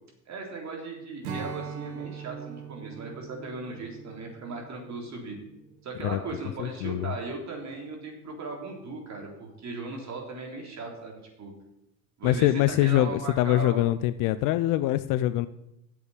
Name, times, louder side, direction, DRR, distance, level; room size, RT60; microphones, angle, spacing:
voice 1, 0.3-5.4 5.8-11.5 12.2-13.8, right 3 dB, 35° right, 1 dB, 3.6 m, -38 dB
Strum, 1.2-6.7, right 7 dB, 65° right, 1.8 m, -42 dB
voice 2, 6.6-7.1 12.2-15.5, left 14 dB, 45° left, 14 dB, 0.5 m, -24 dB
8.1 x 7.1 x 8.6 m, 0.86 s
hypercardioid pair, 80°, 48 cm